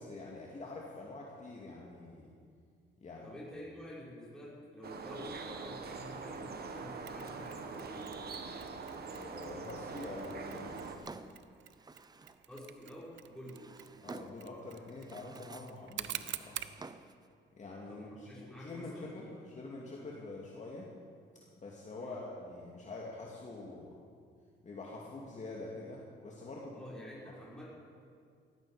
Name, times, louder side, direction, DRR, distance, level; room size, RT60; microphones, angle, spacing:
voice 1, 0.0-2.3 3.0-3.3 9.1-10.9 14.0-16.6 17.6-20.9 21.6-24.0 24.6-26.8, left 2 dB, 35° left, -3 dB, 2.4 m, -45 dB
voice 2, 3.2-8.2 12.5-13.7 17.9-19.4 22.0-22.2 26.7-27.7, equal, 5° left, -7 dB, 5.4 m, -49 dB
sound 1, 4.8-11.0, right 4 dB, 50° right, 1.6 m, -43 dB
Mechanisms, 7.1-16.8, right 11 dB, 70° right, 0.7 m, -48 dB
Drawer open or close, 10.6-12.5 13.3-14.5 14.9-15.8 16.1-17.3, right 3 dB, 20° right, 0.7 m, -51 dB
17.5 x 15.0 x 5.0 m, 2.2 s
cardioid pair, 90°, 20 cm